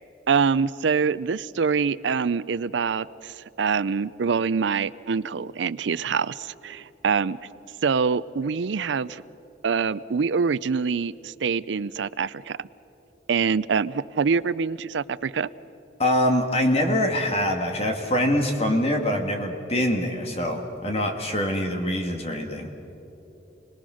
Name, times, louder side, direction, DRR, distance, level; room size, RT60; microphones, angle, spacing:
voice 1, 0.3-7.4 7.8-9.2 9.6-12.7 13.3-15.5, right 5 dB, 80° right, 18 dB, 0.5 m, -25 dB
voice 2, 16.0-22.7, left 1 dB, 35° left, 3 dB, 2.0 m, -24 dB
29.0 x 20.0 x 6.4 m, 3.0 s
head